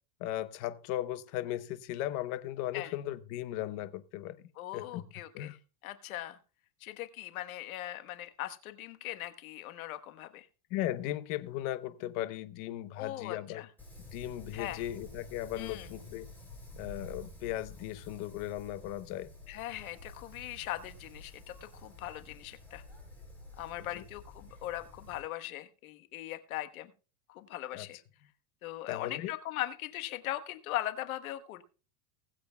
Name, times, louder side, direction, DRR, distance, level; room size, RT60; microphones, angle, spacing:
voice 1, 0.2-4.3 4.7-5.0 5.3-5.6 10.7-13.6 14.1-16.3 16.8-19.3 23.9-24.0 27.7-27.9 28.9-29.3, left 13 dB, 50° left, 0.9 m, -37 dB
voice 2, 4.6-5.6 5.8-6.4 6.8-10.5 13.0-13.7 14.5-14.8 15.6-15.9 19.5-22.8 23.6-26.9 27.3-28.0 28.6-31.6, left 14 dB, 90° left, 1.4 m, -40 dB
Wind, 13.8-25.2, left 1 dB, 5° left, 5.2 m, -50 dB
20.0 x 7.8 x 2.3 m
supercardioid pair, 145°, 41 cm